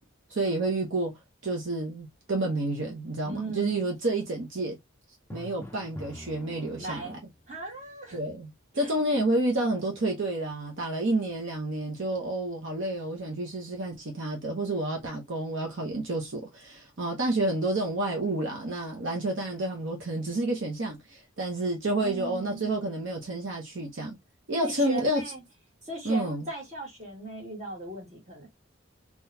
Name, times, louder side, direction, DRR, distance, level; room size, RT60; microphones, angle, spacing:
voice 1, 0.3-1.1 1.4-4.8 5.3-7.2 8.1-24.2 24.5-25.2 26.0-26.5, right 2 dB, 65° right, 0.9 m, -29 dB
voice 2, 3.2-3.7 6.8-7.2 7.5-8.2 8.7-8.9 22.0-22.7 24.6-25.4 25.8-28.5, right 2 dB, 35° right, 2.0 m, -38 dB
Drum, 5.3-7.3, left 1 dB, 10° left, 0.4 m, -44 dB
3.8 x 3.0 x 2.7 m
head